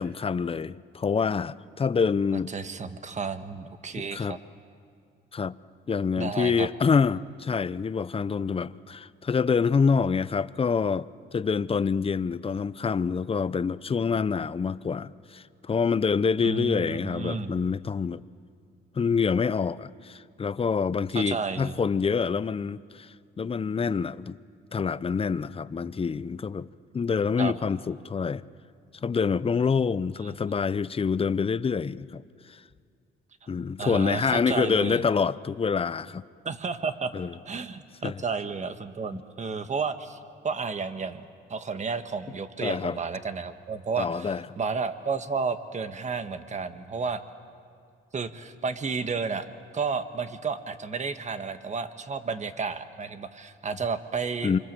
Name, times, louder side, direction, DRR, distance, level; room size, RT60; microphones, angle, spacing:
voice 1, 0.0-2.5 4.1-4.4 5.3-5.6 5.9-18.2 18.9-24.3 24.7-28.5 29.0-32.2 32.5-32.6 33.5-36.2 37.1-37.3 38.0-38.2 42.6-43.0 44.0-44.4 54.4-54.6, left 5 dB, 30° left, 0.6 m, -26 dB
voice 2, 2.5-4.4 6.2-6.7 16.4-17.6 21.1-21.7 27.4-27.5 30.2-30.3 33.8-35.0 36.4-37.1 37.5-40.2 40.4-41.2 41.5-47.2 48.1-49.4 49.7-54.5, right 5 dB, 35° right, 1.5 m, -32 dB
27.5 x 25.0 x 7.6 m
cardioid pair, 90°, 20 cm